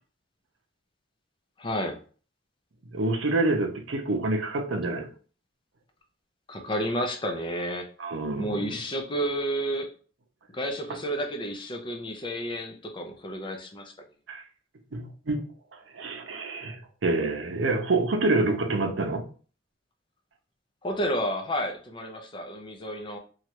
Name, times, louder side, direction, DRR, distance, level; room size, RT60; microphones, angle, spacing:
voice 1, 1.6-2.0 6.5-7.9 8.4-9.9 10.5-13.9 20.8-23.2, equal, 25° left, 0.5 m, -31 dB
voice 2, 2.9-5.1 8.0-8.7 14.3-14.4 14.9-15.4 15.9-19.3, right 2 dB, 75° right, 0.6 m, -27 dB
3.1 x 2.4 x 2.9 m
head